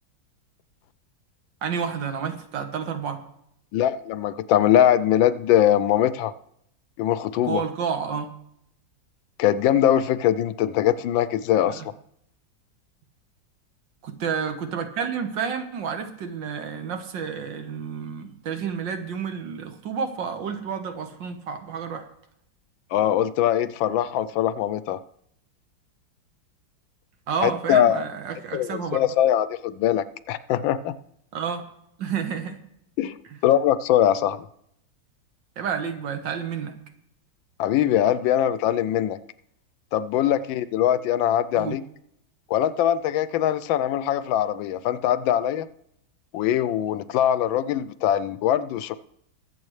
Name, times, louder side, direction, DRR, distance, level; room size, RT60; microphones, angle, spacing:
voice 1, 1.6-3.2 7.4-8.3 14.0-22.0 27.3-29.0 31.3-31.7 32.0-32.6 35.6-36.8 41.5-41.8, right 6 dB, 70° right, 7 dB, 1.8 m, -30 dB
voice 2, 3.7-6.3 7.0-7.6 9.4-11.8 22.9-25.0 27.4-28.0 28.5-30.9 33.0-33.2 33.4-34.4 37.6-39.2 39.9-41.8 42.5-45.7 46.3-49.0, left 11 dB, 80° left, 14 dB, 1.3 m, -22 dB
22.5 x 7.6 x 3.2 m, 0.74 s
omnidirectional pair, 2.1 m